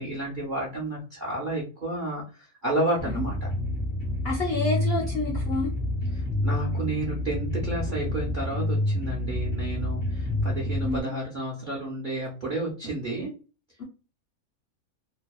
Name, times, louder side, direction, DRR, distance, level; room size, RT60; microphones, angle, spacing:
voice 1, 0.0-3.5 6.1-13.3, right 1 dB, 50° right, -3 dB, 0.6 m, -31 dB
sound 1, 3.0-11.0, left 1 dB, 25° left, 0.4 m, -28 dB
voice 2, 4.2-5.7 10.8-11.0, left 2 dB, 55° left, -3 dB, 0.7 m, -28 dB
2.7 x 2.1 x 2.3 m, 0.33 s
omnidirectional pair, 1.6 m